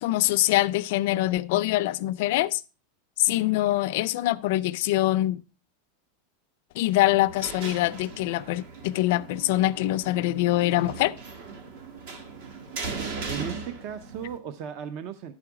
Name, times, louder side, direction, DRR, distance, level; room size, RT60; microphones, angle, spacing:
voice 1, 0.0-2.6 3.2-5.4 6.7-11.2, left 16 dB, 55° left, 0.4 m, -24 dB
sound 1, 7.0-14.4, right 4 dB, 60° right, 1.6 m, -38 dB
voice 2, 13.3-15.3, right 8 dB, 40° right, 0.6 m, -36 dB
11.0 x 4.9 x 4.7 m
supercardioid pair, 165°, 0 cm